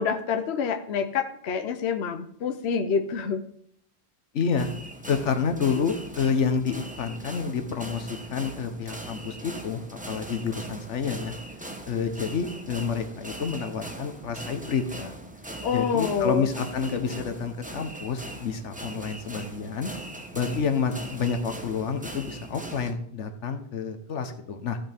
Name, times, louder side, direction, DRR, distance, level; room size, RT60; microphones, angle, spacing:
voice 1, 0.0-3.4 15.6-16.5, left 6 dB, 65° left, 7 dB, 1.0 m, -27 dB
voice 2, 4.3-4.7 5.1-11.3 11.9-15.1 15.7-19.9 20.3-24.8, left 6 dB, 85° left, 8 dB, 1.3 m, -29 dB
sound 1, 4.6-22.9, right 1 dB, 10° right, 0.8 m, -40 dB
15.0 x 5.8 x 3.5 m, 0.66 s
omnidirectional pair, 1.2 m